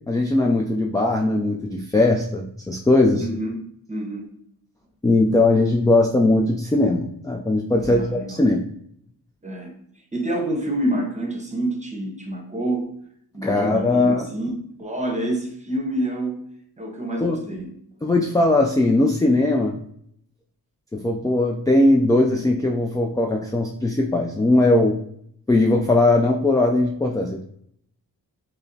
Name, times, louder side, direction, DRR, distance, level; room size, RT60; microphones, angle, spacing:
voice 1, 0.1-3.3 5.0-8.7 13.4-14.3 17.2-17.4 18.0-19.8 20.9-25.0 25.5-27.5, left 2 dB, 10° left, 0 dB, 0.3 m, -19 dB
voice 2, 3.2-4.3 7.8-8.4 9.4-9.7 10.1-12.8 13.3-14.5 14.8-16.4 16.8-17.7, right 1 dB, 20° right, 1 dB, 0.9 m, -27 dB
5.2 x 2.0 x 2.7 m, 0.68 s
cardioid pair, 80°, 38 cm